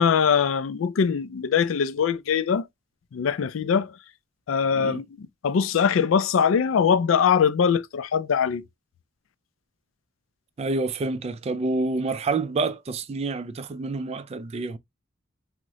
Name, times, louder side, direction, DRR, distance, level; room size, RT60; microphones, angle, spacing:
voice 1, 0.0-2.6 3.1-3.9 4.5-8.6, left 7 dB, 80° left, 0.4 m, -22 dB
voice 2, 10.6-14.8, right 3 dB, 30° right, 0.3 m, -28 dB
3.6 x 2.1 x 2.8 m
head